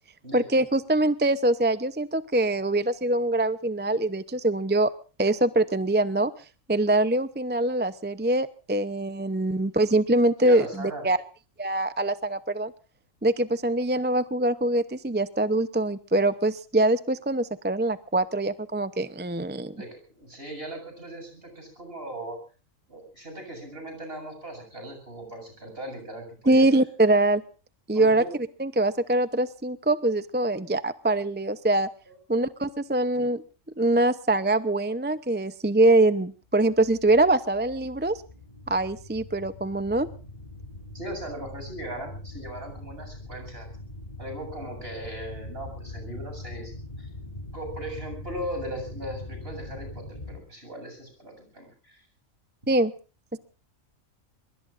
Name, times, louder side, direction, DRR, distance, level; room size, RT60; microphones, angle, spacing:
voice 1, 0.3-4.9 5.2-6.3 6.7-11.2 11.6-12.7 13.2-19.7 26.5-27.4 27.9-28.2 28.6-31.9 32.3-33.4 33.8-38.2 38.7-40.1 52.7-52.9 53.3-53.4, right 2 dB, 10° right, 13 dB, 0.5 m, -23 dB
voice 2, 10.4-11.0 19.7-22.4 22.9-26.7 27.9-28.3 32.1-32.2 40.9-43.7 44.2-47.1 47.5-52.0, right 1 dB, 45° right, 4 dB, 7.8 m, -38 dB
sound 1, 36.5-50.4, left 2 dB, 35° left, 4.0 m, -42 dB
24.0 x 22.5 x 2.6 m, 0.36 s
omnidirectional pair, 1.4 m